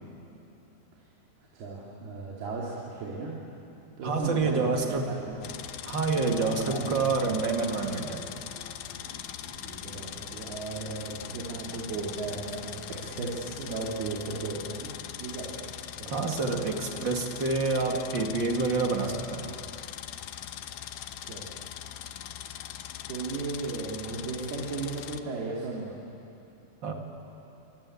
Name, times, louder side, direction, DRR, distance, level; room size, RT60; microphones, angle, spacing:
voice 1, 1.5-3.4 4.0-4.9 5.3-5.4 6.5-6.9 7.3-7.4 9.6-15.7 16.0-16.3 21.2-21.5 23.1-26.0, right 3 dB, 85° right, -4 dB, 4.8 m, -36 dB
voice 2, 4.0-5.1 5.9-8.3 16.1-19.6 26.8-26.9, right 4 dB, 35° right, 3 dB, 2.2 m, -28 dB
sound 1, 4.9-13.0, equal, 15° right, 7.2 m, -52 dB
sound 2, 5.4-25.2, left 11 dB, 75° left, 2.1 m, -41 dB
27.5 x 23.5 x 8.6 m, 2.9 s
omnidirectional pair, 4.4 m